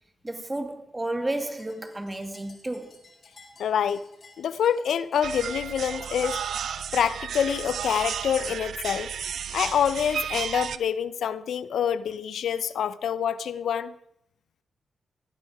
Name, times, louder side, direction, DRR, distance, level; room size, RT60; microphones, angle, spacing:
voice 1, 0.2-3.0, right 1 dB, 20° right, 2.3 m, -32 dB
sound 1, 1.2-10.8, left 3 dB, 55° left, 4.7 m, -55 dB
voice 2, 3.6-4.0 4.4-6.4 6.9-9.1 9.5-13.9, left 8 dB, 80° left, 0.6 m, -26 dB
sound 2, 5.2-10.8, right 8 dB, 80° right, 0.7 m, -33 dB
19.5 x 12.5 x 4.9 m
cardioid pair, 60°, 0 cm